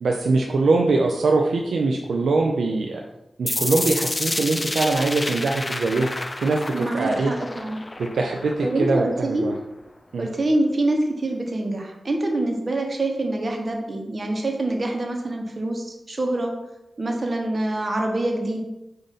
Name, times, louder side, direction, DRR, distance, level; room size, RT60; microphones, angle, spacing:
voice 1, 0.0-3.0 3.4-6.1 6.4-7.3 8.0-9.5 10.1-10.3, right 3 dB, 85° right, 1 dB, 0.4 m, -22 dB
sound 1, 3.5-9.4, left 2 dB, 35° left, 0.5 m, -30 dB
voice 2, 6.7-7.8 8.6-9.4 10.2-16.5 17.0-18.6, right 2 dB, 50° right, 2 dB, 1.0 m, -25 dB
4.9 x 2.6 x 4.0 m, 0.91 s
cardioid pair, 40°, 0 cm